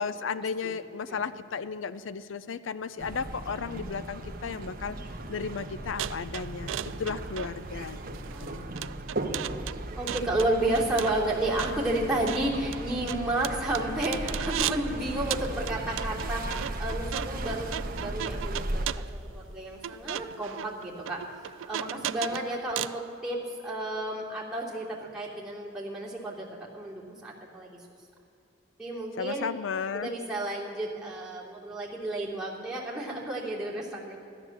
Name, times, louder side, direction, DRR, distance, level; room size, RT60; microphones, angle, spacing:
voice 1, 0.0-5.0 5.3-8.7 29.2-30.1, left 5 dB, 80° left, 14 dB, 0.5 m, -34 dB
sound 1, 3.0-18.9, right 1 dB, 50° right, 1.2 m, -36 dB
sound 2, 6.0-14.9 15.3-23.0, right 11 dB, 75° right, 0.4 m, -37 dB
voice 2, 8.3-8.8 10.0-16.5 16.8-21.2 21.7-26.5 26.7-27.8 28.8-29.5 29.9-34.2, right 1 dB, 5° right, -6 dB, 3.1 m, -32 dB
15.0 x 12.0 x 7.3 m, 2.7 s
head